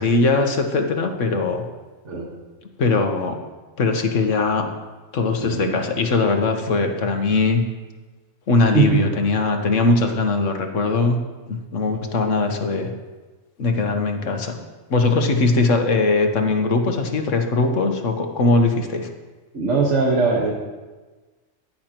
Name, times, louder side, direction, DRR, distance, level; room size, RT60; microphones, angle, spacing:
voice 1, 0.0-1.6 2.8-3.4 3.8-4.7 5.1-7.6 8.5-11.2 11.5-12.9 13.6-14.6 14.9-19.1, left 3 dB, 65° left, 4 dB, 1.4 m, -20 dB
voice 2, 5.4-5.8 8.7-9.0 19.5-20.5, right 4 dB, 60° right, -3 dB, 1.8 m, -20 dB
15.0 x 10.5 x 3.0 m, 1.3 s
omnidirectional pair, 1.4 m